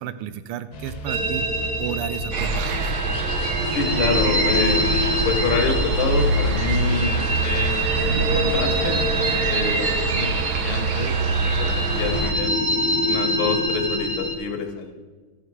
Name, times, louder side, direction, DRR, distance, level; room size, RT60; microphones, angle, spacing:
voice 1, 0.0-1.4 1.8-2.9, right 10 dB, 85° right, 12 dB, 1.5 m, -32 dB
sound 1, 0.7-9.4, left 1 dB, 55° left, 1.2 m, -37 dB
sound 2, 1.1-14.3, equal, 50° right, 1.5 m, -26 dB
sound 3, 2.3-12.3, right 3 dB, 70° right, 1.5 m, -24 dB
voice 2, 3.7-4.8 5.2-12.5 13.1-14.9, left 5 dB, 75° left, 2 dB, 1.8 m, -27 dB
13.5 x 5.8 x 4.6 m, 1.4 s
omnidirectional pair, 2.4 m